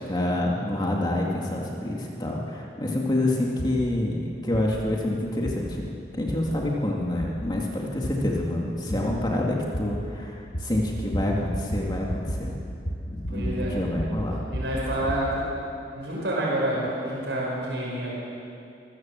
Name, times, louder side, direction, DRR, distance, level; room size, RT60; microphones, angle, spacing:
voice 1, 0.1-12.5 13.1-14.4, left 1 dB, 25° left, -2 dB, 2.2 m, -27 dB
sound 1, 3.6-3.7 4.5-4.6 5.4-5.6 6.3-6.4 7.2-7.3 8.0-8.1 8.9-9.0 9.7-9.8 10.5-10.7 10.9-11.3 11.5-11.8 12.1-12.4 12.7-13.5 13.8-15.2, equal, 65° left, 6.5 m, -31 dB
voice 2, 13.3-13.8 14.5-15.5 15.9-18.1, right 1 dB, 90° right, -5 dB, 5.4 m, -28 dB
25.0 x 15.0 x 7.5 m, 2.6 s
head